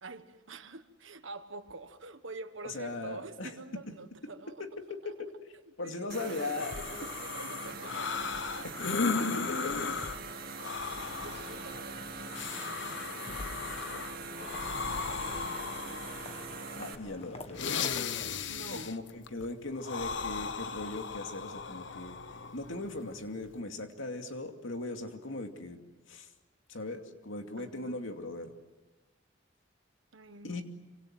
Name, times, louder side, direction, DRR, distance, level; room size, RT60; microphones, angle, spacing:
voice 1, 0.0-4.6 5.0-5.1 5.8-6.3 7.0-8.4 9.6-9.9 10.6-16.0 18.5-19.0 27.6-28.1 30.1-30.6, right 3 dB, 80° right, 1.4 m, -48 dB
voice 2, 2.6-3.5 4.6-5.3 5.8-6.9 8.6-9.8 11.0-11.2 16.8-17.6 18.7-22.2 22.5-25.8 26.1-26.3 26.7-28.5 30.4-30.6, left 2 dB, 85° left, 2.5 m, -39 dB
sound 1, 6.1-16.9, right 4 dB, 50° right, 2.6 m, -43 dB
sound 2, 6.6-23.6, left 5 dB, 65° left, 1.0 m, -37 dB
sound 3, 11.2-18.4, left 2 dB, 30° left, 1.7 m, -50 dB
26.5 x 25.5 x 7.8 m
head